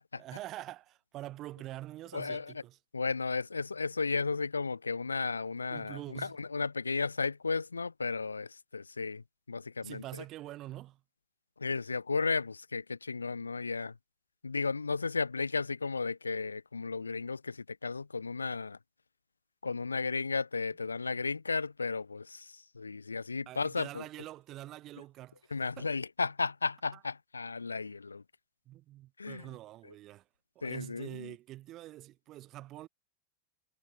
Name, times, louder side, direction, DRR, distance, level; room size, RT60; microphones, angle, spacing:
voice 1, 0.2-2.8 5.7-6.4 9.8-11.0 23.5-25.9 26.9-27.0 28.7-30.3 30.5-32.9, right 15 dB, 35° right, 1.0 m, -45 dB
voice 2, 2.1-2.5 2.9-10.0 11.6-13.9 14.4-18.8 19.6-24.0 25.5-28.2 29.2-29.5 30.6-31.3, left 4 dB, 75° left, 0.4 m, -34 dB
figure-of-eight pair, 90°, 0 cm